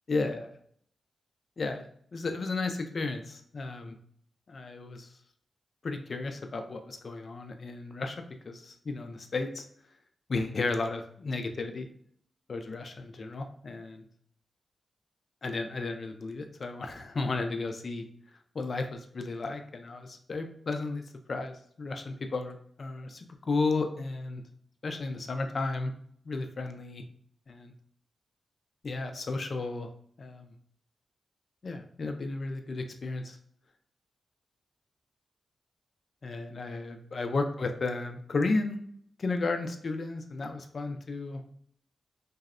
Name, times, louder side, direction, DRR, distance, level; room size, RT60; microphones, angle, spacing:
voice 1, 0.1-0.5 1.6-4.0 4.5-5.1 5.8-8.2 8.4-9.6 10.3-11.9 12.5-14.0 15.4-18.0 18.5-21.0 21.3-24.4 24.8-25.9 26.3-27.0 27.5-27.7 28.8-29.9 30.2-30.5 31.6-33.4 36.2-38.8 39.2-41.6, left 3 dB, 55° left, 6 dB, 0.3 m, -33 dB
2.6 x 2.0 x 2.4 m, 0.62 s
cardioid pair, 60°, 0 cm